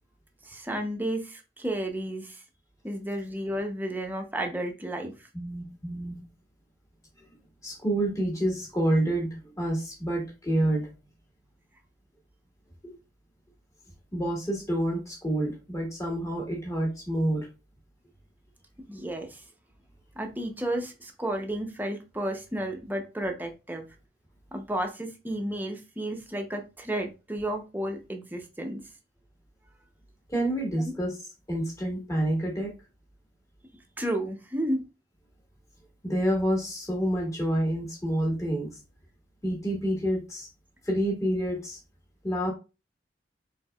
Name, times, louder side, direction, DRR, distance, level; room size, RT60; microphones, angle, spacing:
voice 1, 0.4-2.4 2.8-5.3 18.9-19.4 20.2-23.9 24.5-28.8 30.8-30.9 34.0-34.8, right 1 dB, 10° right, 4 dB, 0.7 m, -32 dB
voice 2, 5.3-6.2 7.6-10.9 12.8-13.0 14.1-17.5 30.3-31.1 31.5-32.7 36.0-38.7 39.4-40.5 40.9-41.8 42.2-42.5, right 1 dB, 20° left, -1 dB, 1.7 m, -28 dB
4.5 x 4.0 x 2.3 m, 0.29 s
head